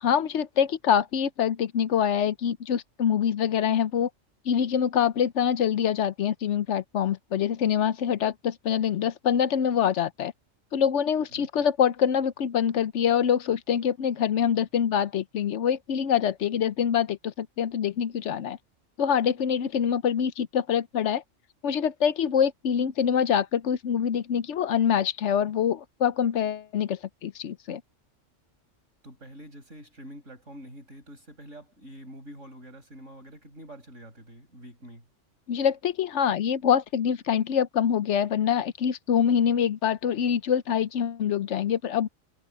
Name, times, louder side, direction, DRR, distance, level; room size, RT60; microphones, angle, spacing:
voice 1, 0.0-4.1 4.4-10.3 10.7-18.6 19.0-21.2 21.6-27.8 35.5-42.1, left 8 dB, 70° left, 1.0 m, -25 dB
voice 2, 11.3-11.6 29.0-35.1, equal, 75° right, 8.1 m, -46 dB
omnidirectional pair, 1.3 m